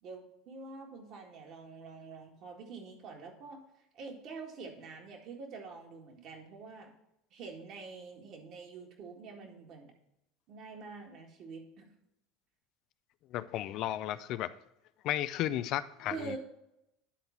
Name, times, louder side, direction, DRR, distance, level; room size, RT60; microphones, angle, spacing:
voice 1, 0.0-3.6 3.9-6.9 7.3-9.9 10.5-11.9 16.1-16.4, right 4 dB, 55° right, 1 dB, 1.9 m, -46 dB
voice 2, 13.3-14.5 15.0-16.4, left 13 dB, 55° left, 14 dB, 0.4 m, -34 dB
10.0 x 3.9 x 5.8 m, 0.85 s
hypercardioid pair, 80°, 0 cm